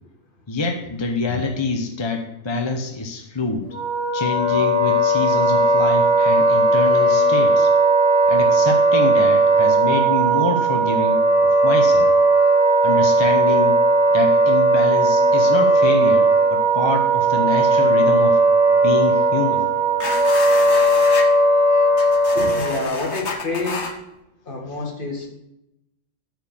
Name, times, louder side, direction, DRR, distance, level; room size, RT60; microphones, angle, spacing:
voice 1, 0.5-3.7 4.1-7.7 8.3-11.2 11.6-12.1 12.8-13.8 14.1-18.4 18.7-19.7, left 3 dB, 25° left, 4 dB, 0.7 m, -25 dB
Wind instrument woodwind instrument, 3.7-22.8, right 2 dB, 80° right, 2.7 m, -17 dB
sound 1, 20.0-21.3 21.9-23.9, left 4 dB, 60° left, 1.4 m, -30 dB
voice 2, 22.4-23.9 24.5-25.3, left 2 dB, 45° left, 1 dB, 2.0 m, -27 dB
8.9 x 4.9 x 7.1 m, 0.86 s
omnidirectional pair, 1.3 m